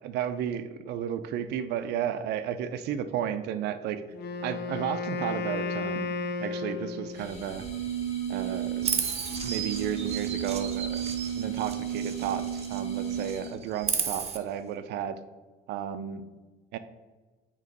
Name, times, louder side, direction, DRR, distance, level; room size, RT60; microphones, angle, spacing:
voice 1, 0.0-4.0 4.4-7.7 8.3-9.0 9.4-11.0 11.4-15.2 15.7-16.3 16.7-16.8, right 9 dB, 80° right, 11 dB, 0.5 m, -33 dB
Wind instrument woodwind instrument, 4.1-7.4, left 4 dB, 80° left, 0.5 m, -33 dB
sound 1, 7.1-13.6, right 9 dB, 40° left, 1.4 m, -33 dB
Chirp tweet, 8.8-12.8 13.1-14.4, right 7 dB, 40° right, 0.7 m, -34 dB
6.6 x 3.0 x 5.2 m, 1.2 s
cardioid pair, 110°, 17 cm